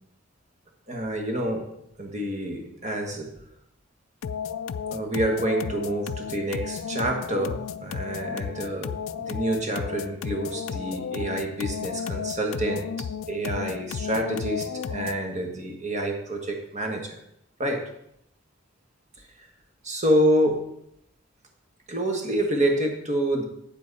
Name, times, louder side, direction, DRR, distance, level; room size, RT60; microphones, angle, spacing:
voice 1, 0.9-1.7 2.0-3.3 4.9-17.2 17.6-17.8 19.8-20.7 21.9-23.4, right 1 dB, 35° right, 3 dB, 1.5 m, -27 dB
sound 1, 4.2-15.3, left 7 dB, 80° left, 0.4 m, -33 dB
8.8 x 7.5 x 4.1 m, 0.75 s
head